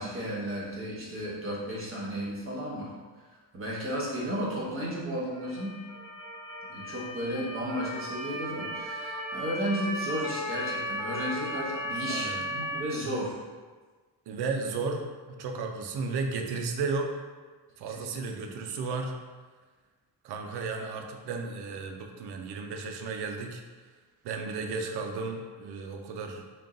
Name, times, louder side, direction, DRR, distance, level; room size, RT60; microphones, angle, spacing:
voice 1, 0.0-2.9 3.5-5.8 6.7-13.4 18.0-18.1, equal, 30° right, -5 dB, 1.1 m, -33 dB
Motor vehicle (road) / Siren, 5.3-12.8, equal, ahead, 1.0 m, -36 dB
voice 2, 12.1-12.5 14.3-17.1 17.8-19.2 20.2-23.6 24.2-26.4, right 4 dB, 70° right, 4 dB, 0.6 m, -34 dB
3.7 x 2.5 x 3.8 m, 1.4 s
cardioid pair, 120°, 42 cm